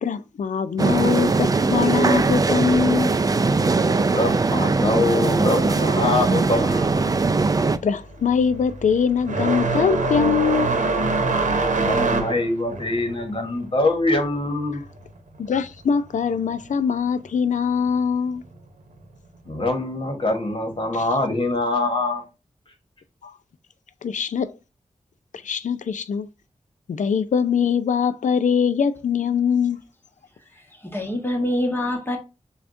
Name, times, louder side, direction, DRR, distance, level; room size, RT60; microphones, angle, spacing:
voice 1, 0.0-3.1 7.8-10.8 15.4-18.4 23.2-23.4 24.0-24.5 25.4-26.3 26.9-29.8, left 6 dB, 85° left, 0.4 m, -22 dB
sound 1, 0.8-7.8, right 3 dB, 30° right, 0.3 m, -20 dB
voice 2, 4.1-7.1 11.8-14.8 19.4-22.2, left 2 dB, 45° left, 1.3 m, -24 dB
sound 2, 7.8-15.6 15.9-17.0 17.9-18.0 18.9-19.0 20.7-20.8, right 3 dB, 85° right, 0.8 m, -25 dB
voice 3, 30.5-32.2, left 1 dB, 15° left, 1.2 m, -26 dB
6.9 x 2.3 x 2.6 m
wide cardioid pair, 110°, 12 cm